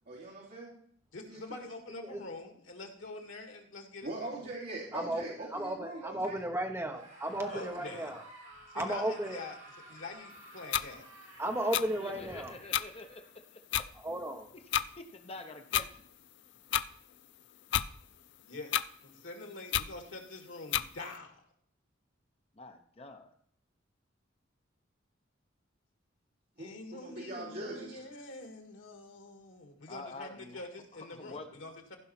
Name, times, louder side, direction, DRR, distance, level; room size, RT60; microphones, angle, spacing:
voice 1, 0.1-0.7 1.3-1.6 4.0-6.4 26.6-28.1, right 2 dB, 55° right, -6 dB, 2.8 m, -42 dB
voice 2, 1.1-4.1 4.4-4.5 7.5-8.1 8.7-9.6 9.9-11.1 18.5-21.5 26.6-32.0, left 2 dB, 85° left, 4 dB, 2.0 m, -45 dB
voice 3, 5.5-8.2 8.7-9.4 11.4-12.6 14.0-14.5, right 1 dB, 15° right, 3 dB, 1.1 m, -34 dB
Screaming, 6.9-13.4, right 2 dB, 70° right, 3.3 m, -53 dB
sound 1, 10.7-10.8 11.7-11.8 12.7-12.8 13.7-13.8 14.7-14.9 15.7-15.9 16.7-16.8 17.7-17.9 18.7-18.8 19.7-19.9 20.7-20.8, left 10 dB, 60° left, 0.4 m, -29 dB
voice 4, 12.0-13.6 15.0-16.0 22.6-23.3 29.9-30.6 31.2-31.5, left 2 dB, 30° left, 6 dB, 0.8 m, -47 dB
15.0 x 5.6 x 4.3 m, 0.63 s
head